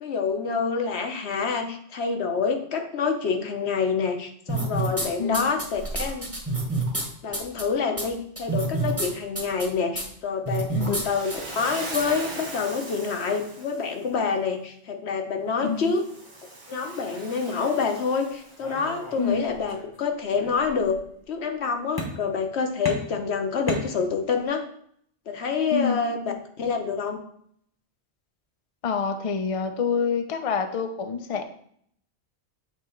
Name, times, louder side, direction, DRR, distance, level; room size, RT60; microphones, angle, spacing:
voice 1, 0.0-6.3 7.2-16.1 16.7-21.0 21.3-24.6 25.3-27.2, left 5 dB, 70° left, 4 dB, 1.1 m, -27 dB
sound 1, 4.5-5.1 5.3-7.0 7.3-7.6 8.0-8.1 8.4-9.1 9.4-9.7 10.0-10.1 10.5-11.0 11.3-11.4 11.9-12.0, right 3 dB, 15° right, 1.2 m, -27 dB
voice 2, 10.7-11.0 15.6-15.9 19.2-19.4 25.7-26.0 28.8-31.4, left 5 dB, 45° left, 7 dB, 0.5 m, -27 dB
Waves surf, 10.8-14.0 15.8-18.9, right 2 dB, 45° right, 1.5 m, -39 dB
sound 2, 18.6-20.0 20.3-21.0 22.0-22.5 22.8-24.4, left 1 dB, 20° left, 0.9 m, -35 dB
7.6 x 2.9 x 4.4 m, 0.66 s
omnidirectional pair, 1.2 m